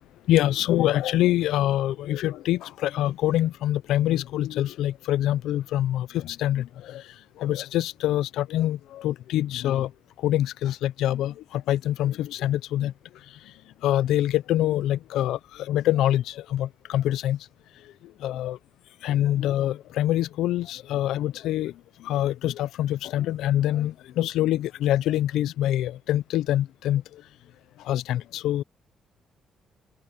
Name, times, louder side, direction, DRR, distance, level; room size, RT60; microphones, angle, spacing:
voice 1, 0.3-7.0 7.4-9.9 10.2-12.9 13.8-15.4 15.7-17.4 18.2-18.6 19.0-21.7 22.0-27.0 27.9-28.6, left 13 dB, 85° left, 0.6 m, -25 dB
open air
cardioid pair, 90°, 0 cm